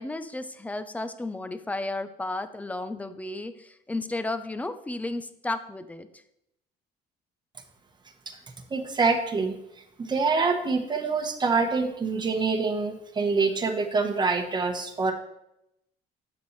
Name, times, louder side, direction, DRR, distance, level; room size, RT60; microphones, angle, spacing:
voice 1, 0.0-6.2, left 2 dB, 10° left, 10 dB, 0.5 m, -33 dB
voice 2, 8.7-9.5 10.0-15.1, right 4 dB, 25° right, 4 dB, 1.1 m, -25 dB
7.9 x 6.9 x 3.2 m, 0.81 s
cardioid pair, 110°, 17 cm